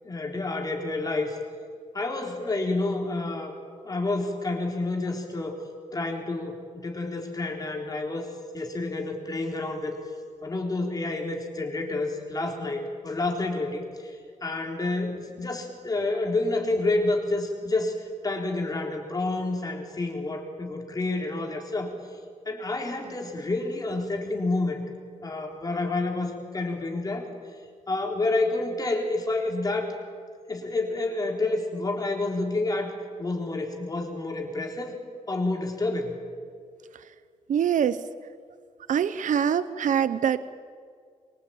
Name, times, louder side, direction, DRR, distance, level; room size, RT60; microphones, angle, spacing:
voice 1, 0.0-1.4 1.9-3.5 3.8-5.5 5.9-8.3 8.5-9.9 10.4-21.9 22.5-24.8 25.2-27.3 27.9-29.9 30.5-35.0 35.3-36.2, left 2 dB, 30° left, 2 dB, 3.7 m, -29 dB
voice 2, 37.5-38.0 38.9-40.4, right 8 dB, 75° right, 14 dB, 0.8 m, -24 dB
25.0 x 23.0 x 8.8 m, 2.1 s
wide cardioid pair, 150°, 13 cm